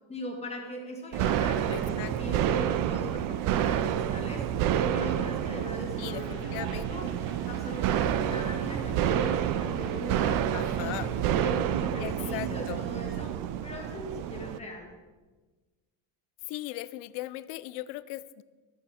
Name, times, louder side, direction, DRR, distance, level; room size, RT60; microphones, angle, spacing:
voice 1, 0.1-4.5 4.9-7.1 7.5-10.4 10.8-13.4 13.6-14.9, left 1 dB, 15° left, 1 dB, 1.9 m, -40 dB
sound 1, 1.1-14.6, right 10 dB, 45° right, 0.6 m, -29 dB
voice 2, 1.7-2.4 6.0-7.1 10.5-11.1 12.0-12.8 16.5-18.4, left 17 dB, 80° left, 16 dB, 0.7 m, -39 dB
sound 2, 6.0-11.2, right 3 dB, 70° right, 2.5 m, -46 dB
12.5 x 12.5 x 4.3 m, 1.3 s
cardioid pair, 170°, 47 cm